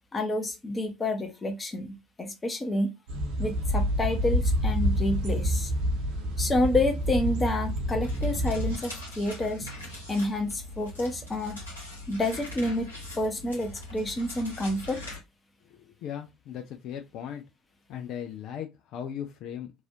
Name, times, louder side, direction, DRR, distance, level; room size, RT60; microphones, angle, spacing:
voice 1, 0.1-2.9 3.4-5.7 6.4-9.7 10.1-11.6 12.1-12.9 13.2-15.0, left 1 dB, 25° left, 0.9 m, -29 dB
sound 1, 3.1-8.8, equal, 65° right, 0.9 m, -27 dB
sound 2, 8.0-15.2, left 1 dB, 85° left, 1.2 m, -42 dB
voice 2, 15.7-17.4 17.9-19.8, left 9 dB, 55° left, 0.4 m, -38 dB
3.1 x 2.5 x 2.7 m
figure-of-eight pair, 55°, 0 cm